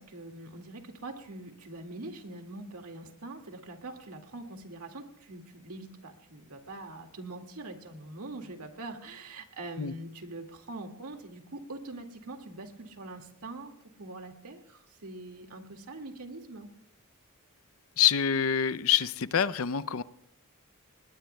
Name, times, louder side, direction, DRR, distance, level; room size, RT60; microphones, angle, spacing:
voice 1, 0.0-13.7 14.0-16.7, right 2 dB, 90° right, 4 dB, 2.1 m, -43 dB
voice 2, 18.0-20.0, left 9 dB, 70° left, 16 dB, 0.6 m, -26 dB
29.5 x 20.5 x 2.3 m, 0.73 s
head